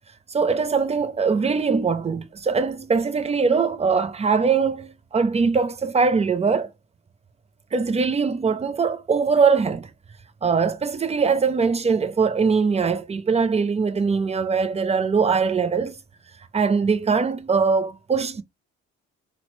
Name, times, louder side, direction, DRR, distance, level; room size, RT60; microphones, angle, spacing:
voice 1, 0.3-6.7 7.7-9.9 10.4-16.0 16.5-18.4, right 5 dB, 20° right, 0.4 m, -22 dB
3.9 x 2.0 x 3.1 m
cardioid pair, 90°, 30 cm